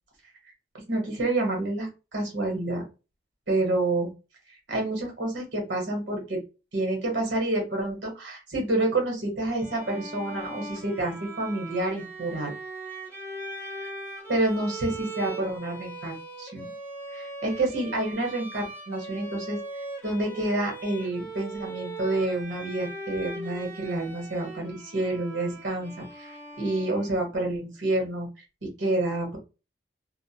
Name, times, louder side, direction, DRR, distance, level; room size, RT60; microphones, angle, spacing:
voice 1, 0.9-2.8 3.5-4.1 4.7-6.4 6.7-12.5 14.3-16.7 17.1-19.6 20.0-28.3 28.6-29.4, right 2 dB, 85° right, 1 dB, 1.1 m, -28 dB
Bowed string instrument, 9.5-27.4, right 2 dB, 10° left, 0.7 m, -40 dB
2.3 x 2.1 x 2.8 m, 0.30 s
head